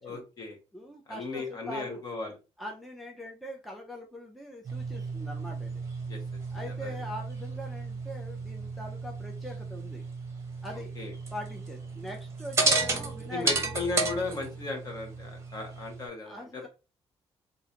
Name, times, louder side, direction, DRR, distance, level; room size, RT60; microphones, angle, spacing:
voice 1, 0.0-0.6 1.1-2.3 6.1-6.2 6.5-7.0 11.0-11.1 13.3-16.7, left 3 dB, 35° left, 3 dB, 1.0 m, -36 dB
voice 2, 0.7-2.0 2.6-5.8 6.5-10.0 10.6-10.9 11.3-13.5 16.3-16.7, equal, ahead, 0 dB, 0.5 m, -42 dB
sound 1, 4.6-16.1, right 3 dB, 25° right, 0.8 m, -33 dB
3.8 x 2.5 x 2.8 m, 0.31 s
wide cardioid pair, 175°, 11 cm